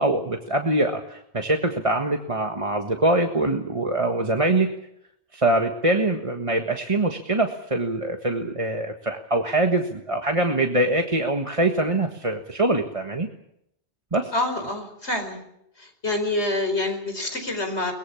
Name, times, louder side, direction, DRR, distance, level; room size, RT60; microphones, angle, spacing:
voice 1, 0.0-4.7 5.3-13.3 14.1-14.3, right 2 dB, 30° right, 3 dB, 1.6 m, -23 dB
voice 2, 14.3-15.4 15.8-17.9, left 2 dB, 75° left, 6 dB, 5.4 m, -27 dB
23.0 x 21.0 x 7.2 m, 0.77 s
omnidirectional pair, 1.1 m